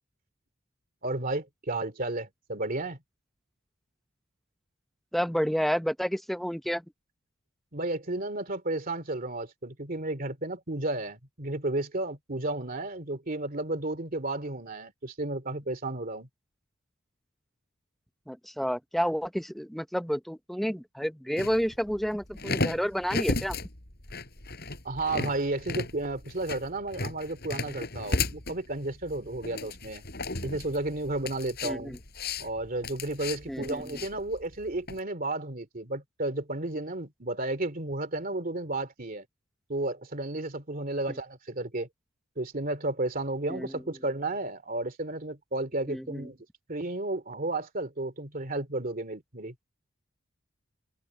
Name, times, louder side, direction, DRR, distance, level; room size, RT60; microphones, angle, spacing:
voice 1, 1.0-3.0 7.7-16.3 24.8-30.0 30.4-32.0 32.4-39.2 39.7-41.9 42.4-46.4 46.7-49.5, right 2 dB, 45° right, 2.7 m, -32 dB
voice 2, 5.1-6.8 18.3-23.6 31.6-32.0 33.5-34.0 43.5-43.8 45.9-46.3, equal, ahead, 0.8 m, -30 dB
sound 1, 21.4-35.0, left 3 dB, 50° left, 4.8 m, -35 dB
head